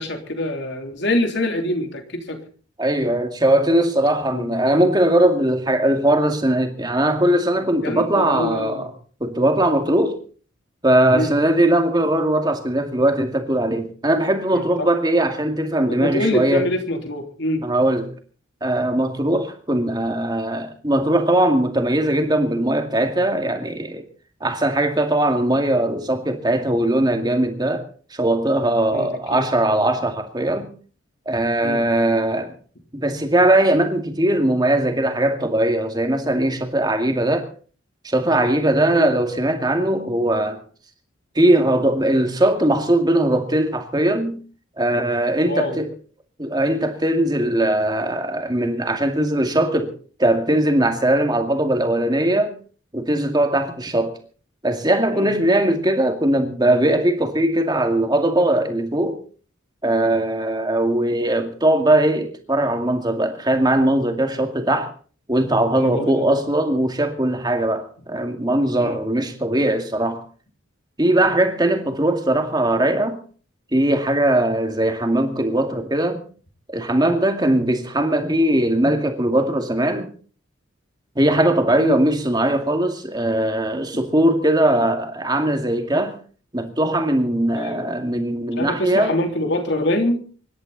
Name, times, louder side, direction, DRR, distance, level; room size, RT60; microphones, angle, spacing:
voice 1, 0.0-2.4 4.3-4.5 7.8-8.9 11.1-11.3 14.5-14.9 15.9-17.7 28.9-29.4 31.6-31.8 38.9-39.1 45.4-45.8 55.1-55.3 65.7-66.4 68.8-69.0 71.2-71.3 81.8-82.0 87.5-87.9 88.6-90.2, left 1 dB, 55° left, 3.3 m, -25 dB
voice 2, 2.8-8.9 9.2-10.2 10.8-16.7 17.6-18.1 18.6-24.0 24.4-27.9 28.1-30.7 31.3-32.5 32.9-37.5 38.0-40.6 41.4-44.4 44.8-45.9 46.4-49.9 50.2-52.5 52.9-54.2 54.6-59.2 59.8-64.9 65.3-70.2 71.0-73.2 73.7-76.2 76.7-80.1 81.2-86.2 86.5-89.1, right 1 dB, 20° right, 2.2 m, -20 dB
25.0 x 12.0 x 4.1 m
head